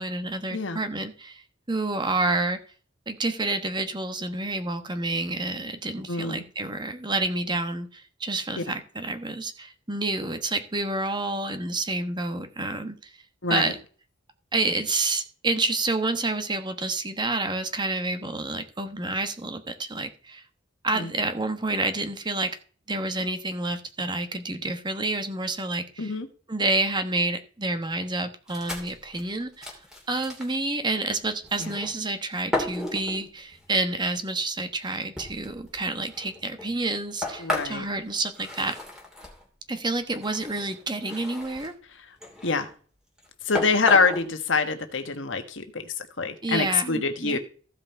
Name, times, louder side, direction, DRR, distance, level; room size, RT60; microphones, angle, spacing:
voice 1, 0.0-1.4 1.7-2.6 3.1-13.1 13.5-13.8 14.5-20.4 20.8-22.6 22.9-26.1 26.5-29.7 30.1-38.8 39.7-41.7 46.4-47.4, right 2 dB, 25° right, 8 dB, 1.2 m, -29 dB
voice 2, 6.1-6.4 8.6-8.7 13.4-13.7 20.9-21.1 26.0-26.3 31.6-31.7 37.4-37.8 42.4-42.7 43.4-47.4, left 4 dB, 80° left, 7 dB, 1.5 m, -25 dB
sound 1, 28.5-30.6 31.4-32.1 32.5-33.8 34.5-34.6 35.2-39.5 40.1-41.7 42.2-42.7 43.2-43.3 43.5-44.2, left 1 dB, 5° right, 2.8 m, -34 dB
15.0 x 5.4 x 4.4 m, 0.40 s
head